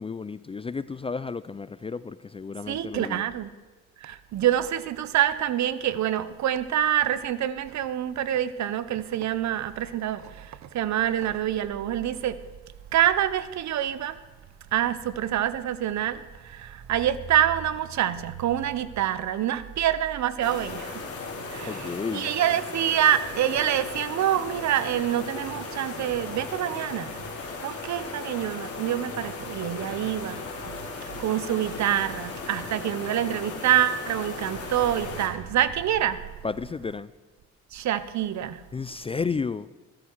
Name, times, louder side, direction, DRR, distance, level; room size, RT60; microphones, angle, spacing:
voice 1, 0.0-3.2 21.7-22.3 36.4-37.1 38.7-39.7, left 4 dB, 20° left, 0.4 m, -32 dB
voice 2, 2.7-3.5 4.0-12.4 12.9-14.2 14.7-21.0 21.5-27.1 27.6-30.7 31.2-36.2 37.7-38.6, right 11 dB, 65° right, 0.9 m, -26 dB
sound 1, 20.4-35.3, left 4 dB, 50° left, 3.4 m, -37 dB
15.5 x 12.5 x 4.7 m
cardioid pair, 90°, 30 cm